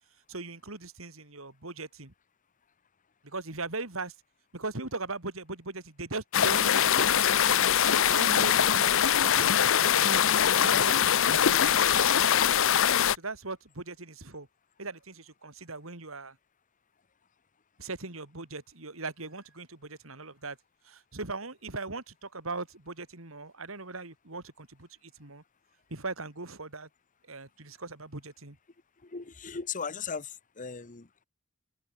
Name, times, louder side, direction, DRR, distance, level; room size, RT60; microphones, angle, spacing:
voice 1, 0.3-2.1 3.2-4.1 4.5-7.7 8.1-8.9 9.2-12.1 13.1-14.5 14.8-16.4 17.8-20.6 20.8-25.4 25.9-26.9 27.2-28.6, right 3 dB, 70° right, 3.4 m, -39 dB
sound 1, 6.3-13.2, left 9 dB, 65° left, 0.7 m, -23 dB
voice 2, 29.0-31.2, left 5 dB, 40° left, 1.0 m, -38 dB
open air
head